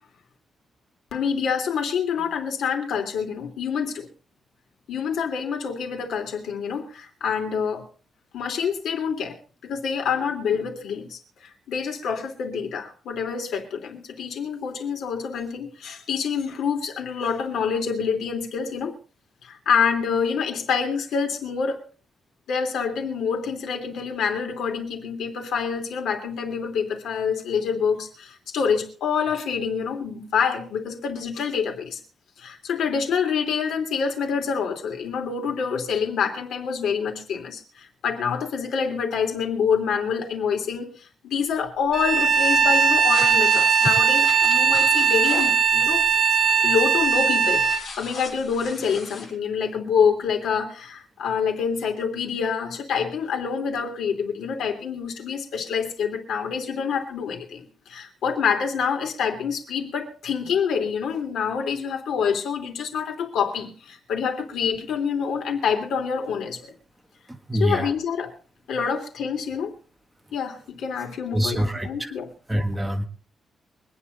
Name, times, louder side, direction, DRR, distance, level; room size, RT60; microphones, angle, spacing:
voice 1, 1.1-4.1 4.9-7.8 8.3-9.4 9.6-18.9 19.4-21.8 22.5-32.0 32.4-46.0 46.6-47.7 47.9-66.7 67.5-68.3 68.7-69.7 70.3-72.3, left 6 dB, 85° left, 4 dB, 3.0 m, -26 dB
Bowed string instrument, 41.9-47.8, right 6 dB, 30° right, 3.6 m, -19 dB
sound 1, 43.1-45.6 47.4-49.3, left 3 dB, 45° left, 7.4 m, -36 dB
voice 2, 67.3-67.9 71.3-72.1 72.5-73.1, equal, 5° right, 4 dB, 1.5 m, -25 dB
24.0 x 9.5 x 4.0 m, 0.39 s
wide cardioid pair, 160°, 0 cm